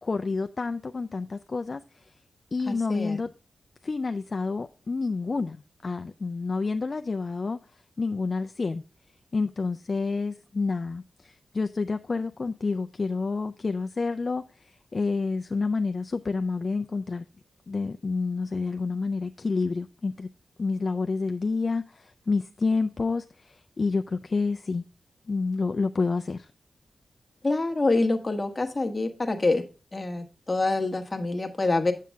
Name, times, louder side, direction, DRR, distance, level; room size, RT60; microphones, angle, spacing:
voice 1, 0.0-2.2 2.5-3.3 3.8-7.6 8.0-8.8 9.3-17.3 17.7-20.3 20.6-24.8 25.3-26.5, left 4 dB, 40° left, 0.4 m, -29 dB
voice 2, 2.7-3.2 27.4-29.7 29.9-31.9, left 2 dB, 25° left, 1.2 m, -26 dB
7.6 x 7.4 x 3.4 m
wide cardioid pair, 95°, 0 cm